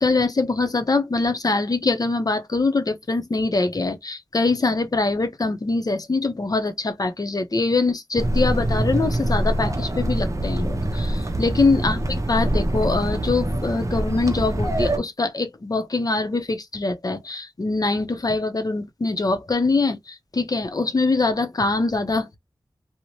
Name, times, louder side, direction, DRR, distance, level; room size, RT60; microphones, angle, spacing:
voice 1, 0.0-12.0 12.3-22.4, left 3 dB, 45° left, 0.6 m, -23 dB
sound 1, 8.2-15.0, right 1 dB, 40° right, 0.6 m, -24 dB
2.6 x 2.1 x 2.9 m
wide cardioid pair, 50°, 9 cm